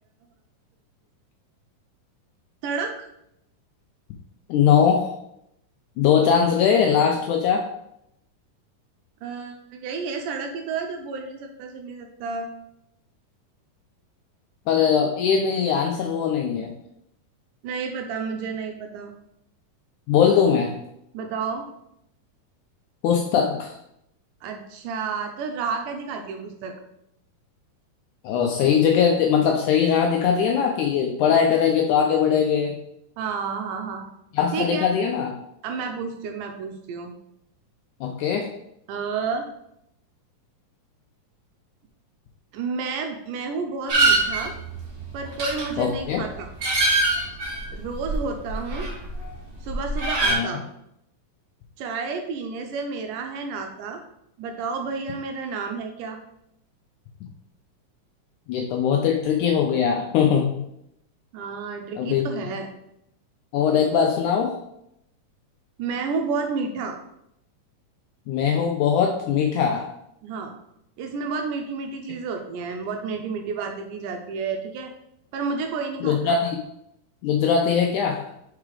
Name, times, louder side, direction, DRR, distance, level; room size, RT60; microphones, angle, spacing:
voice 1, 2.6-3.1 9.2-12.5 17.6-19.1 21.1-21.7 24.4-26.7 33.2-34.1 34.5-34.9 35.6-37.1 38.9-39.5 42.5-44.5 45.1-46.5 47.7-49.0 49.6-50.6 51.8-54.0 54.4-56.2 61.3-62.7 65.8-67.0 70.2-70.5 71.0-74.9 75.3-76.4, right 5 dB, 80° right, 4 dB, 2.0 m, -31 dB
voice 2, 4.5-5.1 6.0-7.7 14.7-16.7 20.1-20.8 23.0-23.8 28.2-32.8 34.3-35.3 38.0-38.5 45.8-46.2 50.2-50.5 58.5-60.6 62.0-62.2 63.5-64.6 68.3-69.9 76.0-76.6 77.2-78.2, left 7 dB, 80° left, 2 dB, 1.8 m, -21 dB
sound 1, 43.9-49.3 49.5-50.3, right 2 dB, 50° right, 1.0 m, -24 dB
4.8 x 4.7 x 4.9 m, 0.79 s
omnidirectional pair, 4.0 m